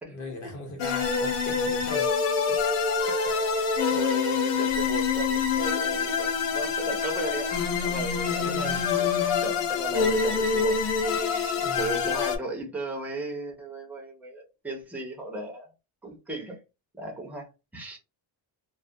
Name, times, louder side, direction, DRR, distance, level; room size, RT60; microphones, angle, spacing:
voice 1, 0.1-2.1 2.5-2.6 8.4-8.8 11.5-12.1, left 2 dB, 35° left, 0.9 m, -39 dB
sound 1, 0.8-12.4, left 5 dB, 80° left, 0.8 m, -26 dB
voice 2, 4.0-10.8 11.1-15.7 16.0-16.6 16.9-18.0, right 2 dB, 5° right, 0.3 m, -36 dB
2.2 x 2.2 x 2.6 m
cardioid pair, 180°, 50 cm